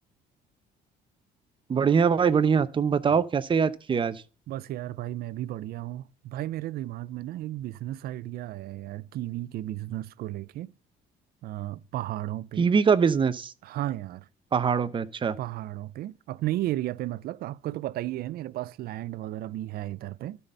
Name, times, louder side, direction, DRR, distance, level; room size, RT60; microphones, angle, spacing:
voice 1, 1.7-4.2 12.6-13.5 14.5-15.4, right 6 dB, 30° right, 0.7 m, -23 dB
voice 2, 4.5-10.7 11.4-12.7 13.6-14.3 15.4-20.4, right 14 dB, 65° right, 0.5 m, -34 dB
12.5 x 4.1 x 5.5 m
cardioid pair, 110°, 17 cm